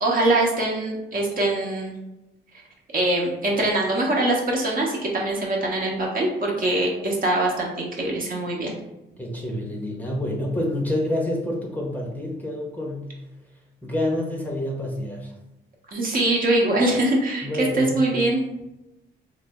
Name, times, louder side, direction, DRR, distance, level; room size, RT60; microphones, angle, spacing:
voice 1, 0.0-1.9 2.9-8.7 15.9-18.4, right 2 dB, 45° right, -1 dB, 0.9 m, -23 dB
voice 2, 9.2-13.2 13.8-15.3 17.4-18.0, left 1 dB, 10° left, -2 dB, 0.7 m, -28 dB
3.2 x 2.0 x 3.4 m, 0.91 s
cardioid pair, 90°, 20 cm